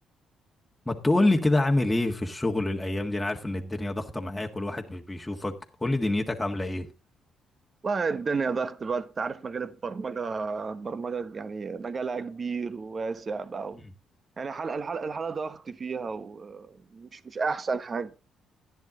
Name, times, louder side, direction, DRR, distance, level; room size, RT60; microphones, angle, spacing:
voice 1, 0.8-6.9 13.8-13.9, left 2 dB, 10° left, 1.6 m, -27 dB
voice 2, 7.8-13.8 14.4-18.2, right 4 dB, 40° right, 1.1 m, -32 dB
11.5 x 10.5 x 3.8 m
cardioid pair, 90°, 0 cm